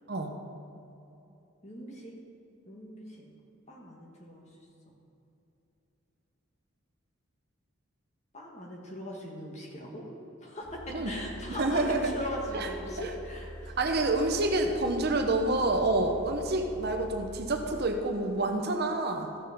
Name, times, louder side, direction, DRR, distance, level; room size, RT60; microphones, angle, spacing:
voice 1, 1.6-2.1 2.7-3.2 3.7-4.5 8.3-10.1 10.4-13.8, equal, 35° left, -1 dB, 1.8 m, -40 dB
sound 1, 10.6-17.8, equal, 15° left, 2.4 m, -44 dB
voice 2, 11.6-12.2 12.5-12.7 13.0-13.1 13.7-19.3, right 2 dB, 50° right, 5 dB, 0.8 m, -28 dB
14.5 x 6.7 x 5.1 m, 2.9 s
head